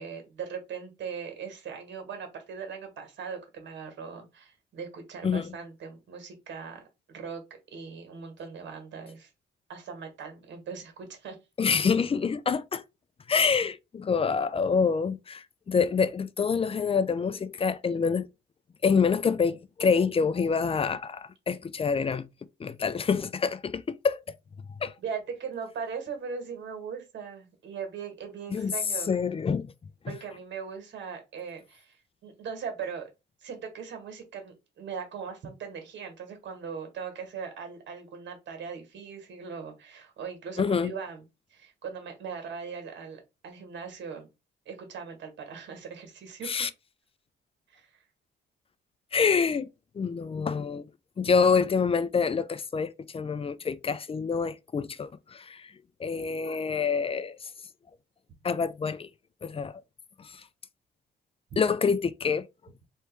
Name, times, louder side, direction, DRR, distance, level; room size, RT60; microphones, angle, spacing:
voice 1, 0.0-6.8 7.1-7.4 7.7-9.3 9.7-11.4 25.0-29.1 30.1-33.1 33.4-41.2 41.5-44.3 44.7-46.7 47.7-48.0 61.5-61.6, right 6 dB, 65° right, 1.9 m, -39 dB
voice 2, 11.6-12.8 13.3-18.3 18.8-22.2 22.6-24.2 24.8-24.9 28.5-28.7 29.1-29.7 40.6-40.9 46.5-46.7 49.1-49.7 50.0-50.8 51.2-55.7 56.0-57.5 58.4-59.1 59.4-59.8 60.2-60.3 61.6-62.5, left 5 dB, 30° left, 0.5 m, -26 dB
3.3 x 3.0 x 4.7 m
cardioid pair, 90°, 20 cm